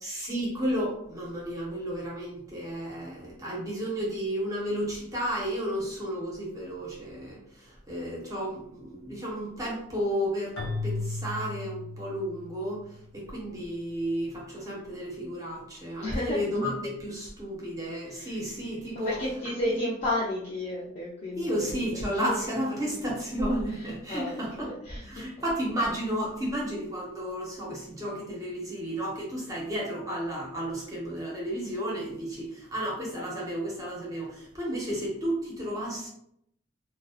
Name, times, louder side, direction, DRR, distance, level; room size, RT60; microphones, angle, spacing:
voice 1, 0.0-19.8 21.4-24.7 25.0-36.1, equal, 15° right, -4 dB, 0.6 m, -32 dB
Keyboard (musical), 10.6-12.8, left 2 dB, 90° left, 0.6 m, -35 dB
voice 2, 16.0-16.4 18.2-18.3 19.0-21.7 22.1-22.3 24.1-24.3 24.6-25.0, left 1 dB, 35° left, -5 dB, 0.4 m, -31 dB
2.6 x 2.0 x 2.3 m, 0.73 s
head